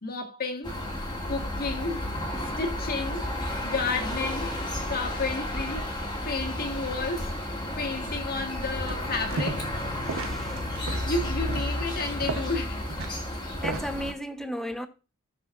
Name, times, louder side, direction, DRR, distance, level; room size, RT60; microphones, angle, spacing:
voice 1, 0.0-0.8 1.3-2.1 2.4-4.6 4.9-6.0 6.2-7.3 7.8-9.7 11.0-12.9, left 3 dB, 45° left, 1.7 m, -32 dB
sound 1, 0.6-14.1, left 1 dB, 20° left, 1.9 m, -32 dB
sound 2, 8.9-9.8 10.1-14.0, right 3 dB, 80° right, 1.0 m, -35 dB
voice 2, 10.0-10.6 13.6-14.9, equal, ahead, 0.8 m, -35 dB
16.0 x 6.1 x 2.5 m
head